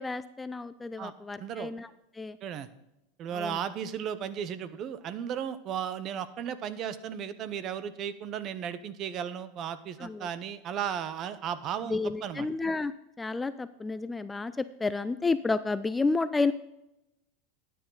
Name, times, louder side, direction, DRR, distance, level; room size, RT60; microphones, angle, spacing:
voice 1, 0.0-1.9 2.2-2.4 3.3-3.6 10.0-10.3 11.9-12.9 13.2-16.5, left 3 dB, 10° left, 13 dB, 0.4 m, -30 dB
voice 2, 1.4-1.7 2.4-2.7 3.2-12.5, right 8 dB, 35° right, 14 dB, 0.8 m, -35 dB
12.5 x 9.4 x 3.9 m, 0.88 s
supercardioid pair, 140°, 0 cm